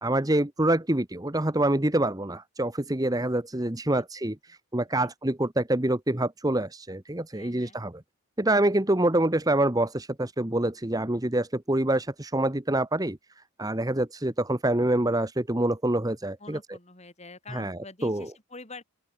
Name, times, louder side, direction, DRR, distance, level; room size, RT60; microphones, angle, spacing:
voice 1, 0.0-8.0 8.4-13.2 13.6-16.6 17.5-18.3, right 1 dB, 15° right, 1.1 m, -26 dB
voice 2, 7.3-7.8 16.4-18.8, left 3 dB, 30° left, 4.2 m, -46 dB
open air
head